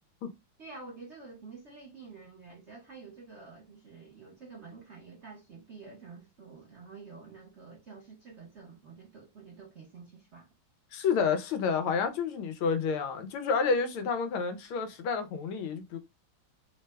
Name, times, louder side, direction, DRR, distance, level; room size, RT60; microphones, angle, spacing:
voice 1, 0.6-10.5, right 4 dB, 55° right, 0.8 m, -49 dB
voice 2, 10.9-16.0, left 5 dB, 90° left, 1.5 m, -29 dB
3.9 x 2.2 x 3.2 m
omnidirectional pair, 2.3 m